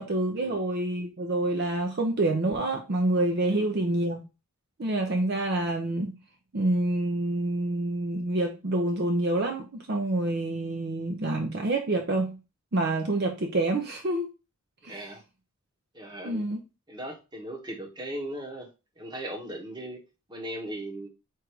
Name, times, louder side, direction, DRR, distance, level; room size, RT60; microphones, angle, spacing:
voice 1, 0.0-4.2 4.8-6.1 6.5-12.4 12.7-14.3 14.8-15.0 16.2-16.6, right 2 dB, 45° right, 0.6 m, -27 dB
voice 2, 14.8-15.2 15.9-16.5 16.9-18.7 19.0-20.0 20.3-21.1, right 1 dB, 20° right, 1.0 m, -38 dB
4.6 x 2.5 x 4.5 m
head